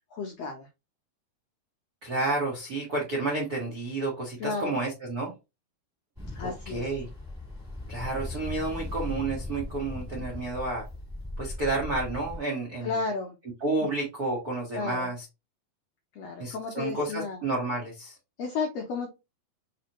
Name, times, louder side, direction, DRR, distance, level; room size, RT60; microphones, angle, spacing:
voice 1, 0.1-0.7 4.4-4.8 6.3-6.8 12.8-13.4 14.7-15.1 16.1-17.4 18.4-19.1, left 4 dB, 80° left, 2 dB, 1.4 m, -33 dB
voice 2, 2.0-5.3 6.4-7.1 7.9-10.8 11.4-13.0 13.6-15.2 16.4-18.2, right 2 dB, 85° right, -1 dB, 0.8 m, -30 dB
Ocean, 6.2-12.4, left 2 dB, 15° right, 0.7 m, -38 dB
4.2 x 4.1 x 2.9 m, 0.25 s
omnidirectional pair, 3.9 m